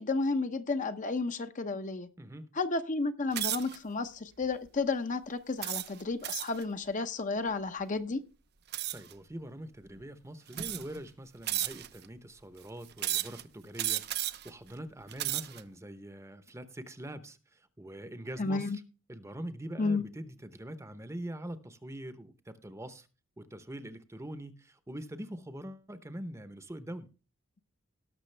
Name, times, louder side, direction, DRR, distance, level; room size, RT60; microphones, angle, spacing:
voice 1, 0.0-2.1 2.6-8.2 18.4-18.8 19.8-20.0, left 3 dB, 40° left, 0.7 m, -32 dB
voice 2, 2.2-2.5 8.9-18.7 19.1-23.1 23.4-27.1, right 1 dB, 15° right, 0.8 m, -43 dB
sound 1, 3.3-3.8 4.4-4.7 5.6-6.6 8.7-9.1 10.0-10.1 10.5-11.0 11.5-12.0 13.0-13.4 13.8-14.5 15.0-15.6, right 13 dB, 55° right, 0.6 m, -33 dB
18.5 x 6.3 x 3.3 m
head